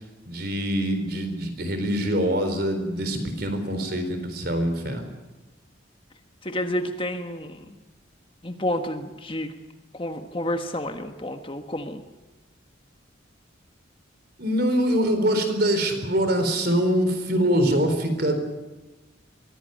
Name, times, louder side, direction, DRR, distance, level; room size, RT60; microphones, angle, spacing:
voice 1, 0.3-5.1 14.4-18.4, equal, 50° right, 7 dB, 4.1 m, -24 dB
voice 2, 6.4-7.6 8.4-9.5 9.9-12.0, left 1 dB, 25° left, 6 dB, 1.4 m, -30 dB
23.0 x 17.0 x 9.3 m, 1.1 s
head